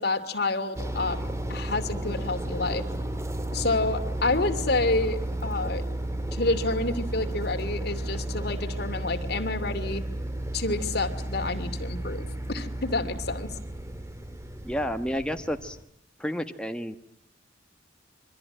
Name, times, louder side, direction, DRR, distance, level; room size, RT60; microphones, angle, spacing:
voice 1, 0.0-2.9 3.5-5.9 6.3-10.0 10.5-13.6, left 2 dB, 60° left, 7 dB, 2.6 m, -29 dB
sound 1, 0.8-15.8, right 1 dB, 15° right, 1.8 m, -33 dB
voice 2, 14.6-15.8 16.2-17.0, equal, 5° left, 5 dB, 1.2 m, -30 dB
27.5 x 24.0 x 8.9 m, 0.69 s
head